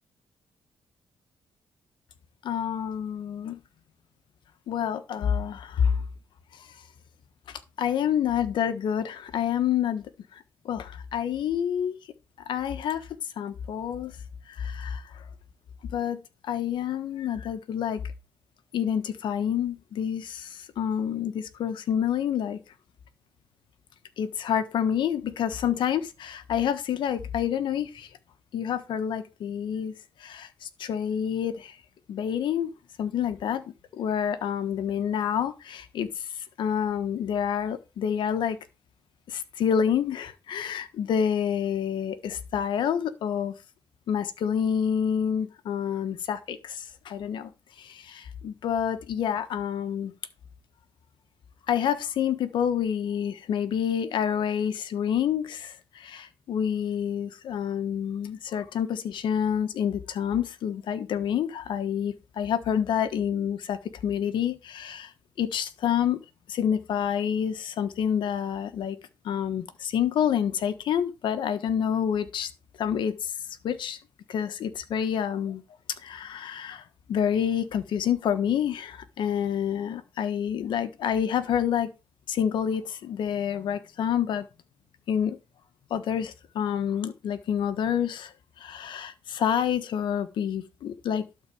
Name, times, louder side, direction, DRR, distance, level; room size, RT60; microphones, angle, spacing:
voice 1, 2.4-3.6 4.7-6.0 6.5-6.7 7.5-10.0 10.3-12.0 12.4-13.1 13.4-14.2 14.5-15.2 15.8-18.0 18.7-22.6 24.2-28.1 28.5-29.9 30.2-31.8 32.1-32.7 33.0-33.6 33.9-38.6 39.3-43.5 44.1-47.5 47.8-50.1 51.7-65.1 65.4-66.2 66.5-69.0 69.2-72.5 72.8-73.3 73.6-74.0 74.3-75.6 76.0-81.9 82.3-84.4 85.1-85.4 85.9-88.3 88.6-91.2, left 8 dB, 75° left, 1.4 m, -28 dB
12.0 x 4.3 x 7.0 m
cardioid pair, 90°, 8 cm